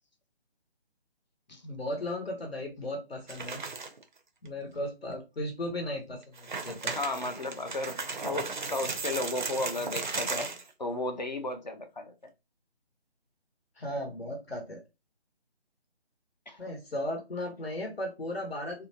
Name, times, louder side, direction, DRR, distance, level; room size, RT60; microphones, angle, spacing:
voice 1, 1.6-3.6 4.4-7.0 13.8-14.8 16.6-18.9, left 1 dB, 65° left, 1.0 m, -36 dB
sound 1, 3.3-4.0 4.5-4.6 5.1-5.2 6.2-10.7, right 4 dB, 50° right, 0.4 m, -36 dB
voice 2, 7.0-10.5 10.8-12.1 16.5-16.6, left 2 dB, 45° left, 0.4 m, -34 dB
2.6 x 2.1 x 2.7 m
figure-of-eight pair, 155°, 32 cm